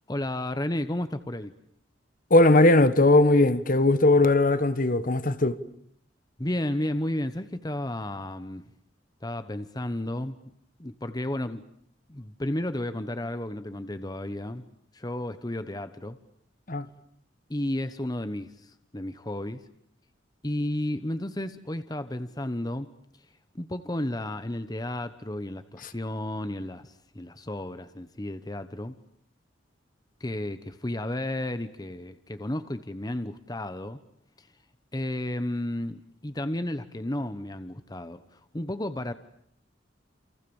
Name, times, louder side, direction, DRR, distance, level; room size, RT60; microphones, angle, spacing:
voice 1, 0.1-1.5 6.4-8.7 9.2-10.4 10.8-11.6 12.1-14.6 14.9-16.2 17.5-19.6 20.4-22.9 23.5-29.0 30.2-34.0 34.4-34.5 34.9-39.1, left 1 dB, 20° left, 1.1 m, -32 dB
voice 2, 2.3-5.6 16.7-16.9, left 2 dB, 45° left, 1.4 m, -19 dB
29.0 x 28.5 x 7.2 m
head